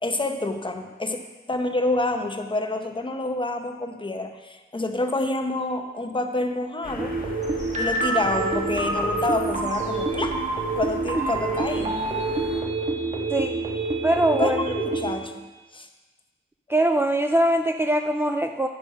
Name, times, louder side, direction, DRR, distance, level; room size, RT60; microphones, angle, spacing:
voice 1, 0.0-1.2 1.5-7.2 7.8-10.4 10.7-12.0 14.3-15.5 15.7-15.9, left 2 dB, 25° left, 5 dB, 0.8 m, -27 dB
sound 1, 6.8-12.6, left 2 dB, 45° left, 1.2 m, -38 dB
sound 2, 7.0-15.1, right 3 dB, 40° right, 1.3 m, -27 dB
voice 2, 14.0-14.6 16.7-18.7, right 1 dB, 10° right, 5 dB, 0.4 m, -22 dB
10.5 x 5.2 x 5.4 m, 1.2 s
wide cardioid pair, 100°, 19 cm